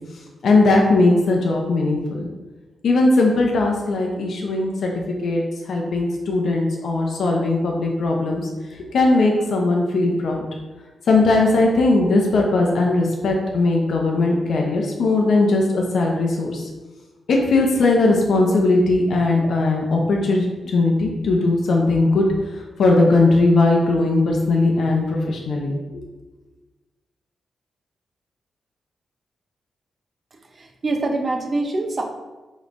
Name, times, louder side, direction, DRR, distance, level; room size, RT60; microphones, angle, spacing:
voice 1, 0.4-2.3 2.8-4.9 5.2-10.4 11.1-16.7 17.3-26.0, left 2 dB, 65° left, 0 dB, 0.6 m, -19 dB
voice 2, 30.5-32.0, right 2 dB, 35° right, 3 dB, 0.6 m, -24 dB
5.1 x 3.1 x 2.5 m, 1.2 s
wide cardioid pair, 125°, 0 cm